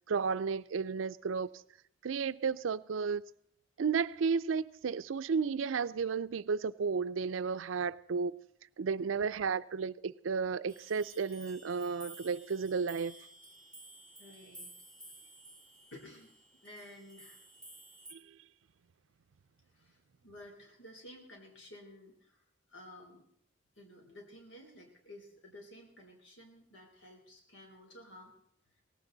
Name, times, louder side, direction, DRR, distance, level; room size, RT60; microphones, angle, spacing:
voice 1, 0.1-1.5 2.0-3.2 3.8-8.3 8.8-13.2 18.1-18.2, right 5 dB, 85° right, 0.5 m, -33 dB
sound 1, 10.7-18.1, right 2 dB, 5° left, 1.8 m, -54 dB
voice 2, 14.2-14.7 15.9-17.4 19.7-23.2 23.8-28.3, left 1 dB, 70° left, 3.6 m, -53 dB
18.0 x 16.0 x 3.9 m
head